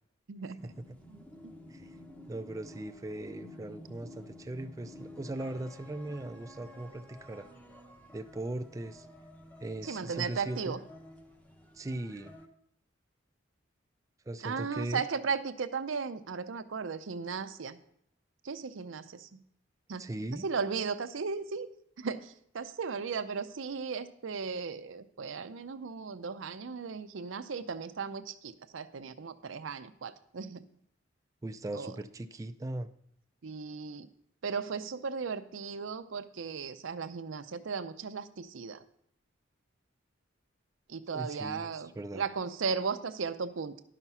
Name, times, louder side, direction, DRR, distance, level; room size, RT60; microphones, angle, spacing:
voice 1, 0.3-0.6 1.1-1.2 1.4-1.5 9.8-10.8 14.4-17.8 18.4-19.4 19.9-20.1 20.4-21.7 22.0-30.7 31.7-31.9 33.4-34.1 34.4-38.8 40.9-43.7, right 5 dB, 85° right, 11 dB, 0.6 m, -36 dB
sound 1, 0.6-12.5, left 1 dB, 10° left, 0.8 m, -51 dB
voice 2, 2.3-7.5 8.1-9.1 9.6-10.8 11.7-12.4 14.3-15.0 20.0-20.5 31.4-32.9 41.1-42.2, right 1 dB, 15° right, 8 dB, 0.3 m, -39 dB
11.0 x 6.0 x 5.5 m, 0.71 s
head